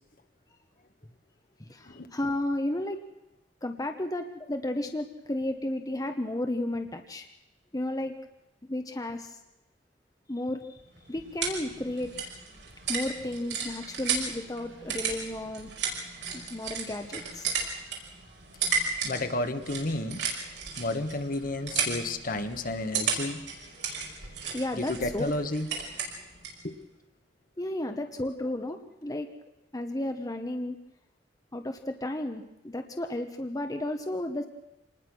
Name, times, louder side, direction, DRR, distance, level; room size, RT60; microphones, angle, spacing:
voice 1, 1.6-3.0 3.6-7.3 7.7-8.1 8.7-9.4 10.3-10.8 11.1-12.2 12.9-15.7 16.3-17.5 24.2-25.3 27.6-29.3 29.7-30.8 31.5-34.5, left 1 dB, 20° left, 6 dB, 1.1 m, -33 dB
sound 1, 10.8-26.6, right 5 dB, 85° right, 5.5 m, -34 dB
voice 2, 19.0-20.2 20.8-23.4 24.8-25.7 26.6-26.7, left 2 dB, 50° left, 8 dB, 1.5 m, -31 dB
26.0 x 20.0 x 6.2 m, 0.94 s
head